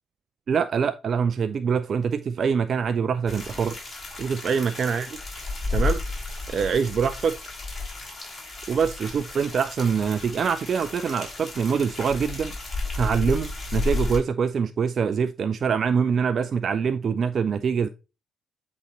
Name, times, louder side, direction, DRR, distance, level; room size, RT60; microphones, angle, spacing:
voice 1, 0.5-3.8 4.2-5.2 5.7-6.0 6.5-7.3 8.7-12.5 13.0-17.9, right 6 dB, 50° right, 0.5 m, -24 dB
sound 1, 3.3-14.2, left 3 dB, 35° left, 3.4 m, -32 dB
8.0 x 4.3 x 4.0 m
hypercardioid pair, 45°, 0 cm